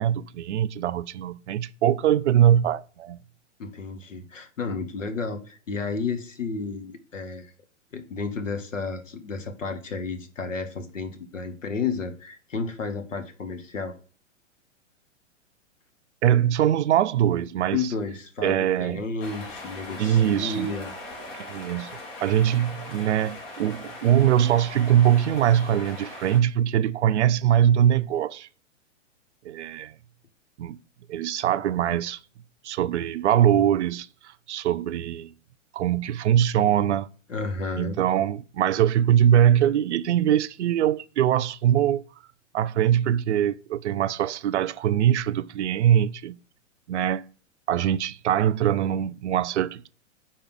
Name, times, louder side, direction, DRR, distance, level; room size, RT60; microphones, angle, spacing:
voice 1, 0.0-3.2 16.2-17.8 18.4-19.0 20.0-20.7 21.4-21.9 22.2-28.5 29.4-29.9 30.6-30.8 31.1-32.2 32.6-34.1 34.5-35.3 35.7-37.1 37.8-42.0 42.5-46.4 46.9-47.2 47.7-49.9, right 10 dB, 65° right, 0.5 m, -22 dB
voice 2, 3.6-7.5 7.9-13.9 17.7-20.9 37.3-38.0, left 4 dB, 80° left, 1.2 m, -32 dB
sound 1, 19.2-26.4, left 2 dB, 50° left, 2.6 m, -40 dB
5.1 x 4.2 x 6.0 m
figure-of-eight pair, 115°, 38 cm